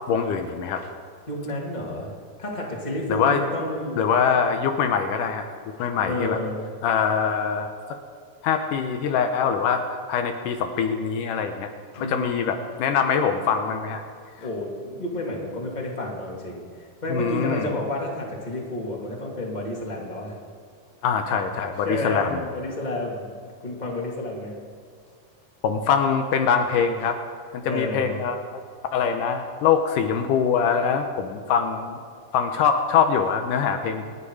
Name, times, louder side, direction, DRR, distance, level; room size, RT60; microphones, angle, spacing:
voice 1, 0.1-0.9 3.1-3.4 4.0-5.5 5.8-6.4 6.8-8.0 8.4-11.7 11.9-14.0 17.1-17.7 21.0-22.5 25.6-27.2 27.5-28.4 28.9-32.0 32.3-34.1, left 6 dB, 80° left, 5 dB, 2.4 m, -23 dB
voice 2, 1.3-2.1 2.4-4.0 6.0-6.6 12.0-12.6 14.4-20.3 21.8-23.3 23.6-24.5 27.6-28.2, left 1 dB, 15° left, -2 dB, 2.5 m, -30 dB
28.0 x 9.7 x 4.9 m, 2.1 s
omnidirectional pair, 3.8 m